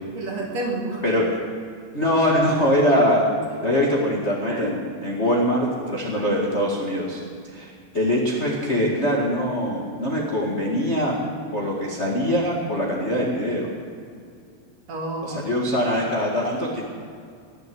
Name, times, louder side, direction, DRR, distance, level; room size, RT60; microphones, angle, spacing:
voice 1, 0.1-1.0 4.4-4.7 6.1-6.4 14.9-15.4, right 2 dB, 45° right, -1 dB, 3.1 m, -30 dB
voice 2, 1.9-3.3 3.6-7.2 7.5-11.1 11.5-13.7 15.2-16.8, equal, 40° left, -3 dB, 0.9 m, -23 dB
20.0 x 8.0 x 7.9 m, 2.3 s
omnidirectional pair, 4.7 m